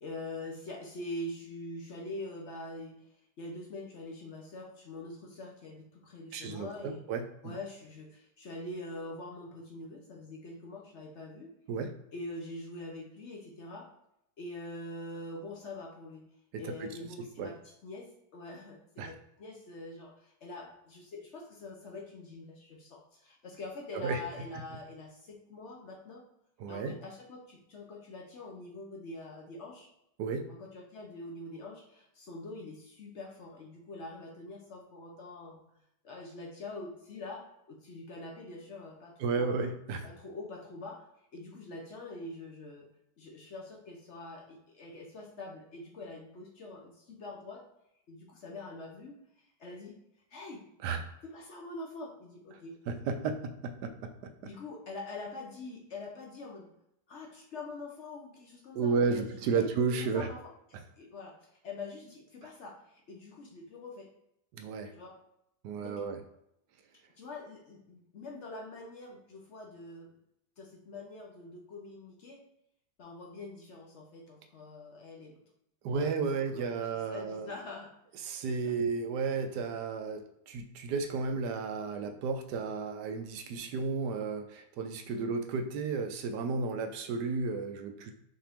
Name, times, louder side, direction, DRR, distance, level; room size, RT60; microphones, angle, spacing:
voice 1, 0.0-3.0 3.4-7.0 7.4-11.5 12.1-13.9 14.4-16.2 16.6-26.2 26.7-29.9 30.5-35.6 36.0-39.7 40.0-42.9 43.2-47.6 48.1-50.0 50.3-50.6 51.3-52.8 54.4-56.7 57.1-59.7 60.0-64.1 64.9-65.2 65.8-66.0 67.2-70.2 70.6-72.4 73.0-75.4 75.9-76.7 77.1-77.9 78.4-78.7 85.1-85.3, left 2 dB, 65° left, 0 dB, 0.7 m, -44 dB
voice 2, 6.3-7.6 11.7-11.9 16.5-16.9 17.4-17.5 19.0-19.1 23.9-24.2 26.6-27.0 30.2-30.4 39.2-40.0 50.8-51.0 52.9-54.1 58.7-60.3 64.5-64.9 65.6-66.2 75.8-77.5 78.2-88.1, right 4 dB, 75° right, 7 dB, 1.0 m, -33 dB
5.7 x 2.6 x 3.5 m, 0.80 s
omnidirectional pair, 2.2 m